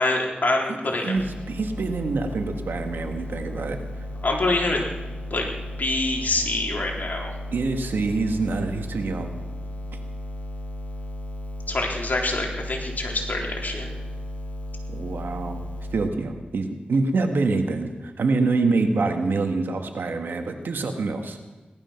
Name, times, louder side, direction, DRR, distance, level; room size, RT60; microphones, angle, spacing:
voice 1, 0.0-1.2 4.2-4.9 5.3-5.5 5.8-7.3 11.7-13.9, left 2 dB, 55° left, -1 dB, 3.8 m, -25 dB
voice 2, 0.7-3.8 7.5-9.3 14.9-15.6 15.9-21.4, right 3 dB, 85° right, 5 dB, 1.6 m, -26 dB
sound 1, 1.1-16.1, left 1 dB, 40° left, 2.1 m, -35 dB
18.0 x 13.0 x 5.9 m, 1.2 s
cardioid pair, 50°, 3 cm